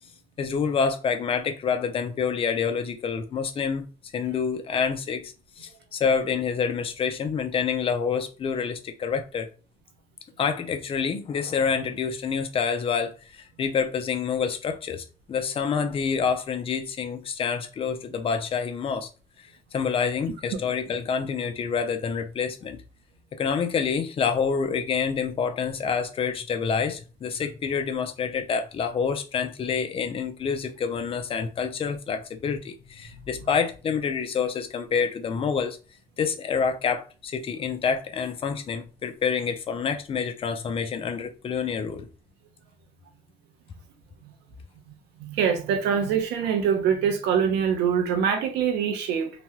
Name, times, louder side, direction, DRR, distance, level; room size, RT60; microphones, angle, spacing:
voice 1, 0.4-3.9 4.1-9.5 10.4-19.1 19.7-22.8 23.3-35.8 36.2-42.1, left 6 dB, 35° left, 0.5 m, -27 dB
voice 2, 45.2-49.3, right 7 dB, 85° right, 0.7 m, -24 dB
2.9 x 2.2 x 2.9 m
cardioid pair, 110°, 17 cm